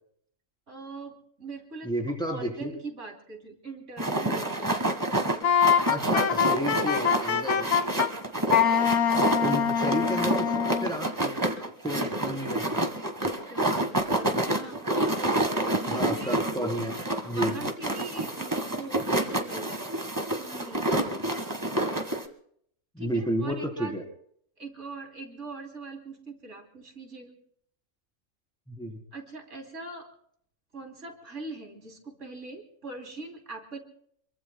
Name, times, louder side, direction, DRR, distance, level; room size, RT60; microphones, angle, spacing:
voice 1, 0.7-5.5 13.2-16.4 17.3-21.4 23.0-23.9 24.6-27.4 29.1-30.1 30.7-33.8, right 3 dB, 65° right, 3 dB, 3.3 m, -42 dB
voice 2, 1.8-2.7 5.9-7.7 9.4-10.5 10.8-12.8 15.9-16.9 17.2-17.5 22.9-24.0 28.7-29.0, right 1 dB, 5° left, 1 dB, 3.3 m, -31 dB
sound 1, 4.0-22.3, right 1 dB, 15° right, 1.4 m, -28 dB
Wind instrument woodwind instrument, 5.4-8.1 8.5-10.9, left 8 dB, 80° left, 1.7 m, -24 dB
27.5 x 23.0 x 2.2 m, 0.65 s
omnidirectional pair, 1.4 m